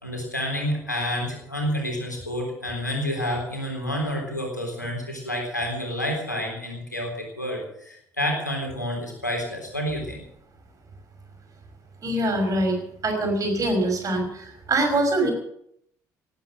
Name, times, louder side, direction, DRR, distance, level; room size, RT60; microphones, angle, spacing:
voice 1, 0.0-10.2, equal, 90° left, 1 dB, 3.6 m, -29 dB
voice 2, 12.0-15.3, right 1 dB, 35° right, 4 dB, 5.9 m, -24 dB
19.0 x 9.2 x 7.6 m, 0.72 s
figure-of-eight pair, 55°, 9 cm